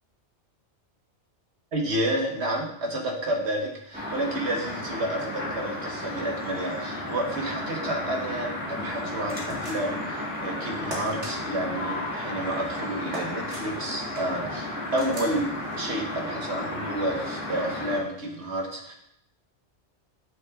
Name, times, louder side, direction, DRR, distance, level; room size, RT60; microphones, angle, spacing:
voice 1, 1.7-15.5 15.8-18.9, right 1 dB, 70° right, 0 dB, 1.6 m, -30 dB
sound 1, 3.9-18.0, left 1 dB, 10° right, 1.5 m, -33 dB
sound 2, 9.5-10.0 10.9-11.3 13.1-13.6 15.0-15.4, right 1 dB, 90° right, 2.2 m, -37 dB
9.4 x 6.2 x 2.5 m, 0.74 s
omnidirectional pair, 1.2 m